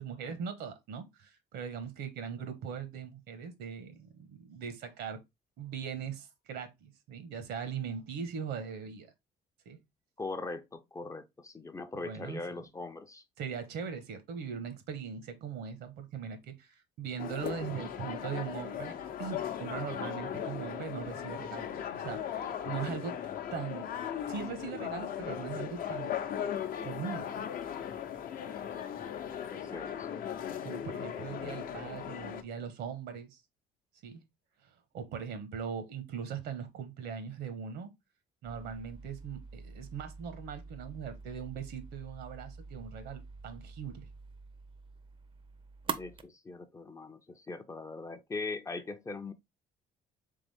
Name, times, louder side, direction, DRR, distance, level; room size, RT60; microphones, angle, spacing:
voice 1, 0.0-5.2 5.6-9.1 9.6-9.8 12.0-12.4 13.4-23.2 23.5-23.9 24.3-26.1 26.8-27.3 30.6-33.4 34.0-34.2 34.9-37.9 38.4-44.1, right 7 dB, 80° right, 1.1 m, -40 dB
voice 2, 10.2-13.2 29.5-30.4 31.3-31.6 46.0-49.3, left 3 dB, 20° left, 0.5 m, -41 dB
sound 1, 17.2-32.4, left 9 dB, 60° left, 0.7 m, -38 dB
sound 2, 38.4-46.2, right 5 dB, 30° right, 0.5 m, -45 dB
3.8 x 3.5 x 3.3 m
cardioid pair, 110°, 17 cm